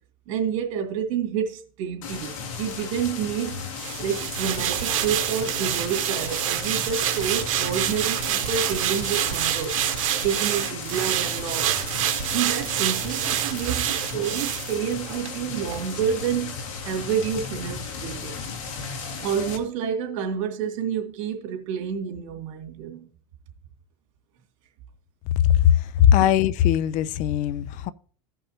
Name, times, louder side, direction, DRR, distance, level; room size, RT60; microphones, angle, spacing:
voice 1, 0.3-3.6 4.0-9.8 10.2-11.9 12.3-16.6 16.8-18.4 19.2-23.0 26.2-26.3, right 8 dB, 70° right, 2.4 m, -29 dB
sound 1, 2.0-19.6, left 5 dB, 85° left, 2.2 m, -35 dB
sound 2, 3.8-15.3 15.7-15.8, right 12 dB, 90° right, 1.0 m, -27 dB
voice 2, 25.3-27.9, left 10 dB, 50° left, 0.5 m, -19 dB
16.5 x 5.5 x 2.9 m
supercardioid pair, 120°, 17 cm